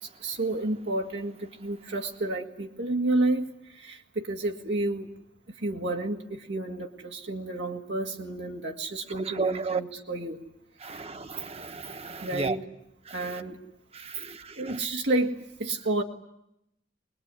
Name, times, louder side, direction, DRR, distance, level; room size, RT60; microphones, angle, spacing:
voice 1, 0.0-5.1 5.6-10.4 10.9-11.0 12.2-12.7 13.1-13.6 14.6-16.0, right 2 dB, 85° right, 1 dB, 2.1 m, -30 dB
voice 2, 9.2-9.8 10.8-12.5 13.2-13.4 13.9-14.8, right 4 dB, 35° right, 9 dB, 1.2 m, -33 dB
24.0 x 21.5 x 9.8 m, 0.81 s
head